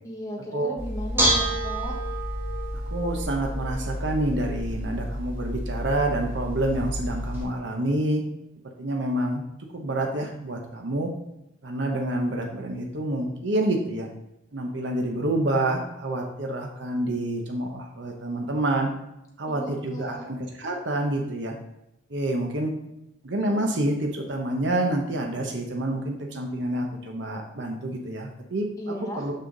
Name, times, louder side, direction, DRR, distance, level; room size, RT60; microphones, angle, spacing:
voice 1, 0.0-2.0 19.5-20.3 28.8-29.3, equal, 15° left, -2 dB, 1.2 m, -36 dB
Bell / Dishes pots and pans, 0.8-7.4, equal, 10° right, 1.8 m, -29 dB
voice 2, 2.7-8.2 8.8-9.4 9.7-11.1 11.6-14.1 14.5-18.9 19.4-21.5 22.1-22.7 23.2-29.3, right 1 dB, 65° right, 1 dB, 0.9 m, -28 dB
6.5 x 5.6 x 3.9 m, 0.85 s
head